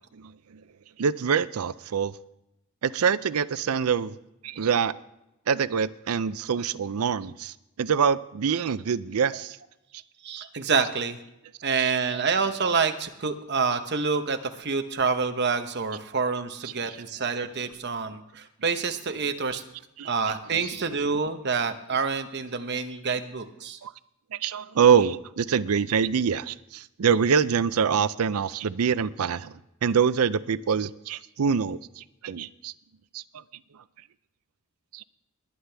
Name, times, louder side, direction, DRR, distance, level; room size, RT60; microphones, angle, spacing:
voice 1, 1.0-2.1 2.8-4.2 4.4-4.9 5.5-9.6 11.8-11.9 16.9-17.0 20.0-20.1 23.8-23.9 24.3-32.7 33.1-33.4 34.9-35.0, right 6 dB, 90° right, 16 dB, 0.5 m, -25 dB
voice 2, 10.2-11.2 11.6-19.6 20.0-23.8, right 5 dB, 50° right, 8 dB, 0.9 m, -27 dB
20.0 x 9.7 x 3.4 m, 0.88 s
head